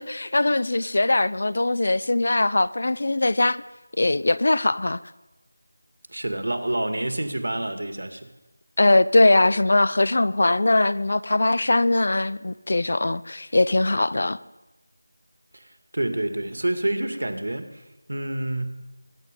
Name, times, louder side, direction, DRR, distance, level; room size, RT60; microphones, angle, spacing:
voice 1, 0.0-3.6 4.0-5.0 8.8-14.4, left 2 dB, 40° left, 0.5 m, -21 dB
voice 2, 6.1-8.3 15.5-17.8 18.1-18.7, right 1 dB, 65° right, 2.0 m, -28 dB
22.5 x 10.5 x 5.3 m
figure-of-eight pair, 180°, 0 cm